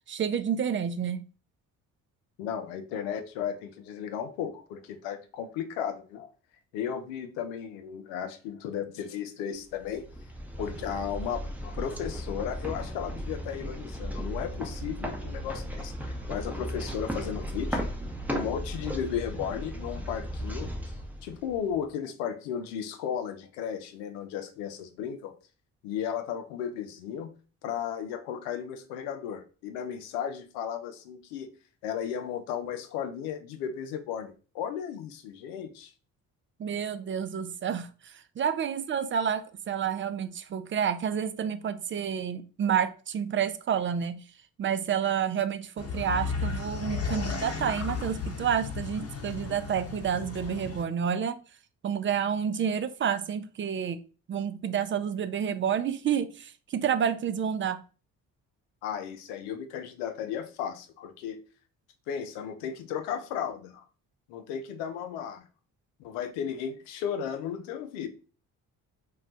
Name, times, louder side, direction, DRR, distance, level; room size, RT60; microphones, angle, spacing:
voice 1, 0.1-1.3 36.6-44.2 44.6-51.4 51.8-54.0 54.3-57.8, right 8 dB, 30° right, 0.4 m, -29 dB
voice 2, 2.4-6.3 6.7-10.1 10.6-17.9 18.3-20.7 21.2-25.4 25.8-27.3 27.6-31.5 31.8-35.9 58.8-61.4 62.1-63.9 64.3-65.5 66.0-68.1, left 8 dB, 85° left, 0.5 m, -35 dB
sound 1, 9.7-21.8, equal, 5° right, 0.8 m, -36 dB
sound 2, 45.8-50.8, left 5 dB, 35° left, 0.9 m, -34 dB
2.2 x 2.1 x 3.8 m
hypercardioid pair, 50°, 40 cm